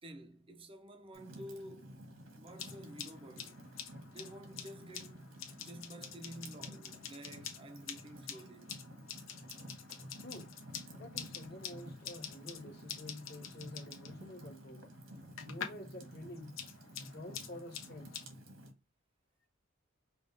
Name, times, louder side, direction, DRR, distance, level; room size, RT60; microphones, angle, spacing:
voice 1, 0.0-2.0 2.4-3.7 4.1-8.7, right 1 dB, 25° right, 0.5 m, -51 dB
Fire, 1.1-18.7, equal, 85° right, 1.5 m, -52 dB
sound 1, 2.5-15.9 16.2-18.2, left 8 dB, 80° left, 0.9 m, -48 dB
voice 2, 10.2-10.6 10.9-14.9 15.4-16.6 17.0-18.1, left 1 dB, 50° left, 1.4 m, -49 dB
5.3 x 2.4 x 3.3 m
head